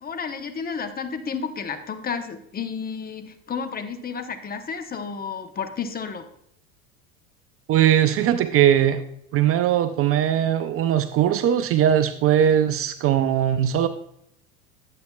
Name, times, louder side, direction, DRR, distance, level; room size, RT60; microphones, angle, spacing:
voice 1, 0.0-6.3, left 6 dB, 20° left, 8 dB, 0.8 m, -31 dB
voice 2, 7.7-9.0 9.3-13.9, right 10 dB, 35° right, 10 dB, 0.5 m, -20 dB
10.5 x 8.5 x 2.3 m, 0.72 s
hypercardioid pair, 90°, 41 cm